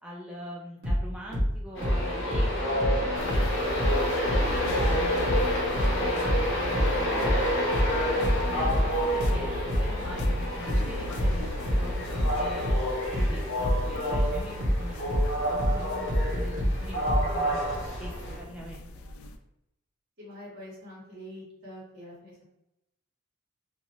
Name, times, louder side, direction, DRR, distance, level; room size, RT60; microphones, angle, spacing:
voice 1, 0.0-4.1 4.5-7.4 8.0-11.5 11.7-12.8 13.2-17.7 18.0-18.9, equal, 5° right, -4 dB, 0.3 m, -43 dB
sound 1, 0.8-4.0 4.3-17.3, equal, 75° right, 1.1 m, -26 dB
Train, 1.7-18.4, equal, 60° left, 0.8 m, -29 dB
sound 2, 3.1-19.4, left 2 dB, 85° left, 0.3 m, -40 dB
voice 2, 20.2-22.4, equal, 50° right, -9 dB, 1.3 m, -45 dB
2.5 x 2.3 x 3.0 m, 0.85 s
head